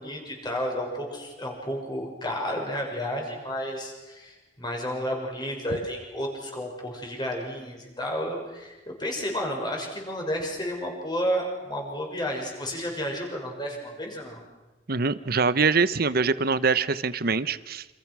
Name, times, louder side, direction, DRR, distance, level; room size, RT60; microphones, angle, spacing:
voice 1, 0.0-14.4, equal, 25° left, 1 dB, 6.5 m, -31 dB
voice 2, 14.9-17.9, right 4 dB, 55° right, 14 dB, 1.0 m, -24 dB
29.0 x 27.5 x 6.3 m, 1.1 s
head